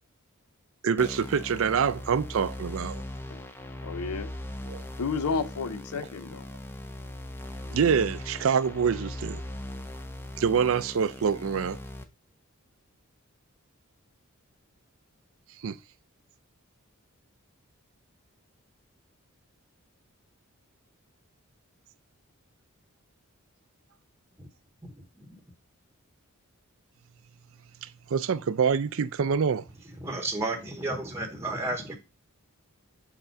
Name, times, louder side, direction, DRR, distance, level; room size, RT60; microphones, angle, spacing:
voice 1, 0.8-3.0 4.7-4.8 7.7-9.4 10.4-11.8 15.6-15.8 27.8-29.6, right 6 dB, 65° right, 0.4 m, -26 dB
sound 1, 1.0-12.0, left 1 dB, 10° left, 0.6 m, -39 dB
voice 2, 3.8-4.3 5.0-6.5, left 4 dB, 85° left, 0.6 m, -31 dB
voice 3, 24.8-25.4 30.0-32.0, right 2 dB, 10° right, 0.9 m, -33 dB
7.0 x 3.7 x 4.4 m
head